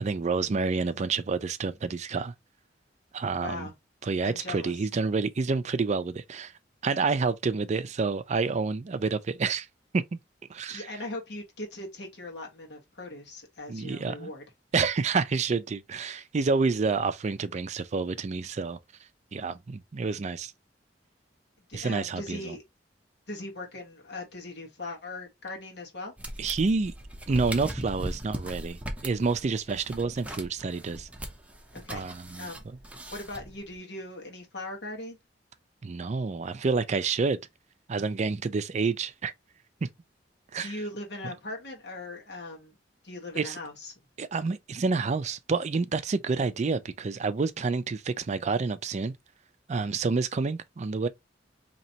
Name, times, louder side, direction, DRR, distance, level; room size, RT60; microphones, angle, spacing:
voice 1, 0.0-2.3 3.1-3.7 4.0-6.5 6.8-9.7 9.9-10.2 10.5-10.9 13.7-14.3 14.7-18.8 19.3-20.5 21.7-22.6 26.4-26.9 27.3-31.1 31.9-32.5 35.8-37.4 37.9-39.3 39.8-39.9 40.5-40.8 41.2-41.3 43.4-43.6 44.2-49.1 49.7-51.1, right 4 dB, 40° right, 0.4 m, -28 dB
voice 2, 3.4-3.7 4.2-4.7 10.7-14.4 21.7-22.6 23.3-26.1 29.7-29.8 31.7-32.1 32.4-32.6 33.1-35.2 40.6-42.7 43.0-43.9, left 2 dB, 65° left, 1.4 m, -39 dB
sound 1, 26.2-33.8, right 1 dB, 10° right, 0.7 m, -39 dB
4.2 x 2.9 x 2.7 m
head